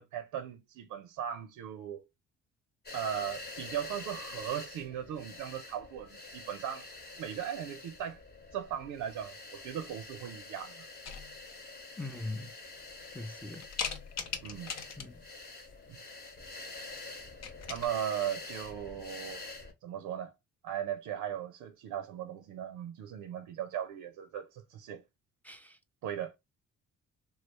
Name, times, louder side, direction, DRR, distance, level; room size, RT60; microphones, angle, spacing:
voice 1, 0.0-2.0 2.9-6.9 7.2-8.2 8.5-10.8 14.4-14.7 17.7-19.4 19.8-20.3 20.6-25.0 26.0-26.3, right 10 dB, 85° right, 0.5 m, -38 dB
sound 1, 2.9-19.7, left 3 dB, 35° left, 0.9 m, -47 dB
sound 2, 11.0-11.6 12.2-12.3 12.8-13.2 13.6-15.3 16.8-17.0 17.3-17.9, left 6 dB, 60° left, 0.7 m, -40 dB
voice 2, 12.0-12.5 13.1-13.6 15.0-15.1 25.4-25.8, left 2 dB, 5° left, 0.4 m, -40 dB
3.1 x 2.4 x 2.9 m
cardioid pair, 90°, 30 cm